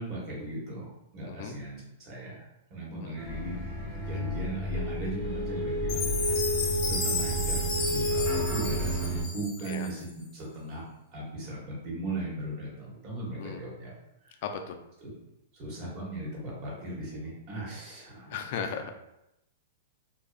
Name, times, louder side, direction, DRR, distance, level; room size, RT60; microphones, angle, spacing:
voice 1, 0.0-2.4 2.7-10.8 11.1-13.9 14.2-14.4 15.0-15.1 15.5-18.4, right 1 dB, 45° right, -5 dB, 1.2 m, -38 dB
sound 1, 3.2-9.2, right 1 dB, 20° right, 0.9 m, -30 dB
Chime, 5.9-10.1, left 3 dB, 35° left, 0.8 m, -33 dB
voice 2, 14.4-14.8 18.3-18.9, left 6 dB, 55° left, 5 dB, 0.3 m, -36 dB
2.6 x 2.3 x 2.4 m, 0.87 s
hypercardioid pair, 120°, 0 cm